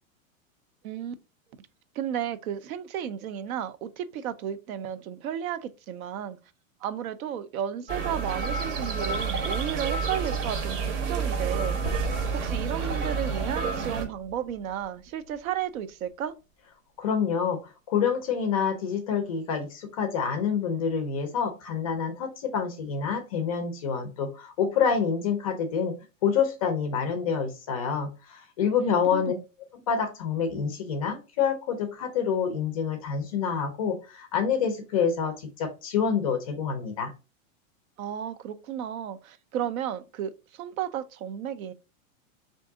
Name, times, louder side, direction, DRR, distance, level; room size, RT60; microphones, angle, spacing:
voice 1, 0.8-1.2 1.9-6.4 6.8-11.8 12.3-16.3 28.8-29.4 38.0-41.7, right 9 dB, 85° right, 0.6 m, -33 dB
sound 1, 7.9-14.1, right 5 dB, 60° right, 0.9 m, -29 dB
sound 2, 11.8-16.0, right 2 dB, 40° right, 0.8 m, -39 dB
voice 2, 17.0-25.9 26.2-29.3 29.9-37.1, left 6 dB, 30° left, 0.4 m, -27 dB
3.6 x 2.6 x 3.5 m
supercardioid pair, 165°, 41 cm